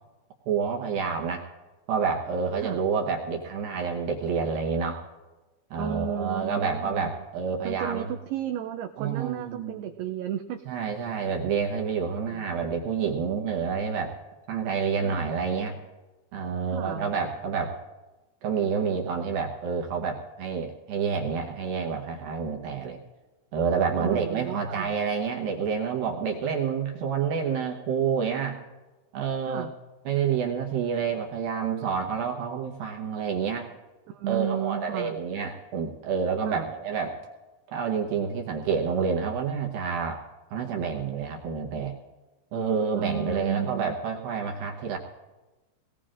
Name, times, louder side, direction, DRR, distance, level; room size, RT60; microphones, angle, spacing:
voice 1, 0.5-1.5 1.9-5.0 5.7-8.1 9.0-9.8 10.7-14.2 14.5-15.8 16.3-17.8 18.4-23.0 23.5-28.6 29.1-29.7 30.1-33.7 34.3-37.2 37.7-40.2 40.5-41.9 42.5-45.0, right 6 dB, 70° right, 1 dB, 2.3 m, -28 dB
voice 2, 5.8-7.1 7.6-10.6 12.2-12.4 15.0-15.3 16.7-17.1 24.0-24.9 29.5-29.7 34.1-35.2 36.5-36.7 43.0-44.0, right 10 dB, 90° right, 5 dB, 2.2 m, -33 dB
24.5 x 19.0 x 2.5 m, 1.2 s
omnidirectional pair, 5.2 m